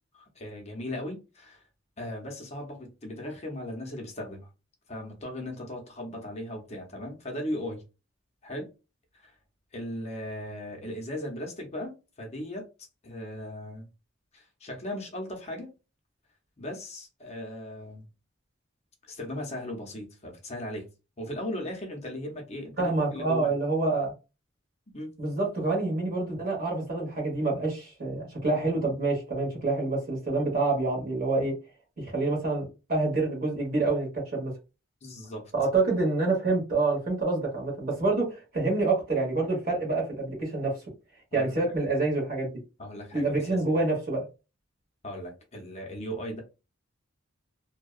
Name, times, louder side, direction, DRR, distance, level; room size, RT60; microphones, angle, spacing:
voice 1, 0.1-1.6 2.0-4.5 4.9-7.8 8.4-8.7 9.1-9.4 9.7-12.7 13.0-13.9 14.3-15.7 16.6-18.1 19.1-20.9 21.2-23.5 24.9-25.1 35.0-35.5 41.3-41.8 42.8-43.7 45.0-46.4, left 1 dB, 35° left, 0.6 m, -37 dB
voice 2, 22.8-24.1 25.2-31.5 32.0-34.5 35.5-40.8 41.3-42.6 43.1-44.2, right 3 dB, 45° right, 1.2 m, -27 dB
2.7 x 2.2 x 2.3 m
head